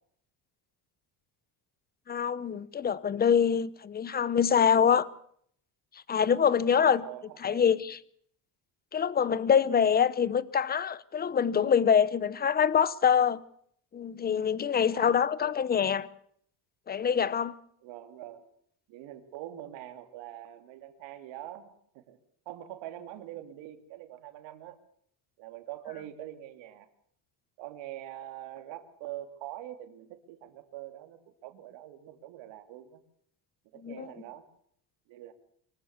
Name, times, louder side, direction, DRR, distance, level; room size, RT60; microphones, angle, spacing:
voice 1, 2.1-5.1 5.9-7.0 7.4-8.0 8.9-13.4 13.9-16.1 16.9-17.5 33.8-34.1, left 7 dB, 20° left, 0.8 m, -25 dB
voice 2, 6.8-7.8 14.9-15.6 17.8-18.5 18.9-22.2 22.5-24.8 25.4-26.9 27.6-33.0 33.7-34.4 35.1-35.3, right 13 dB, 75° right, 2.9 m, -44 dB
24.5 x 14.5 x 8.1 m
cardioid pair, 140°, 45 cm